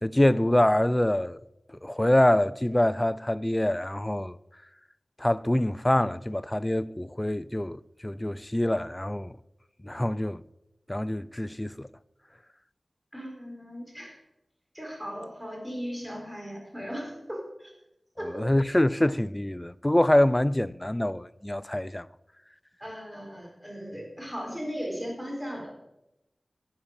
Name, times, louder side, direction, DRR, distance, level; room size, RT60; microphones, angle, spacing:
voice 1, 0.0-1.4 1.8-4.4 5.2-9.4 9.8-10.4 10.9-11.9 18.4-22.1, left 1 dB, 15° left, 0.4 m, -25 dB
voice 2, 13.1-14.1 14.7-17.7 18.2-18.5 22.8-25.7, equal, 10° right, 4.2 m, -37 dB
11.5 x 8.6 x 6.6 m
wide cardioid pair, 70°, 0 cm